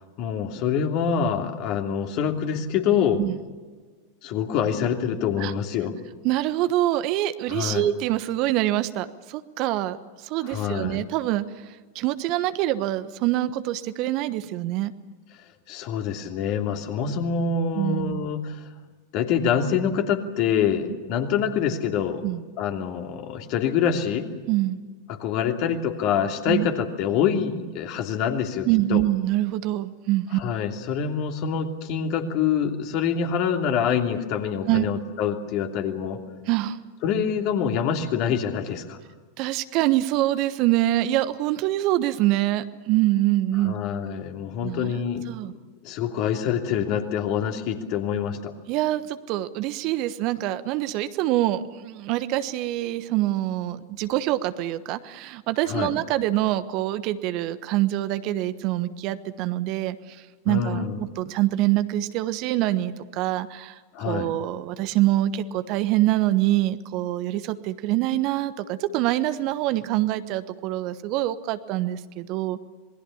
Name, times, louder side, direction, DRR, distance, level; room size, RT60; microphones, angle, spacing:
voice 1, 0.2-3.2 4.2-5.9 7.5-7.8 10.4-11.0 15.7-18.7 19.1-22.2 22.6-24.3 25.1-29.0 30.3-36.2 37.0-39.0 43.6-45.5 45.8-48.5 55.7-55.9 60.5-61.0 63.9-64.3, left 7 dB, 45° left, 4 dB, 3.0 m, -26 dB
voice 2, 6.2-14.9 17.7-18.3 22.2-22.4 24.5-24.8 26.5-26.7 28.6-30.4 34.7-34.8 36.4-36.8 39.4-43.8 44.6-45.0 45.3-45.5 48.7-63.8 64.0-72.6, right 15 dB, 45° right, 12 dB, 1.2 m, -25 dB
27.0 x 21.0 x 7.2 m, 1.4 s
figure-of-eight pair, 90°, 0 cm